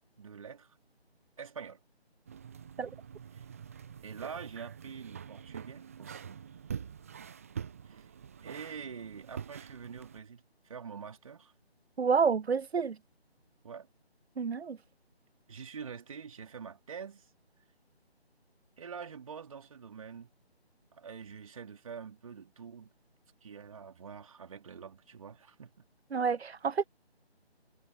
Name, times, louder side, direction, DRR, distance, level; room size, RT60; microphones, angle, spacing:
voice 1, 0.2-0.8 1.4-1.8 3.3-3.5 4.0-6.4 7.8-8.1 8.4-11.5 13.6-13.9 15.5-17.3 18.8-20.3 20.9-22.9 23.4-25.7, right 6 dB, 30° right, 4.6 m, -45 dB
sound 1, 2.3-10.2, right 7 dB, 15° right, 1.2 m, -45 dB
voice 2, 12.0-13.0 14.4-14.8 26.1-26.8, right 6 dB, 75° right, 0.6 m, -29 dB
figure-of-eight pair, 160°, 32 cm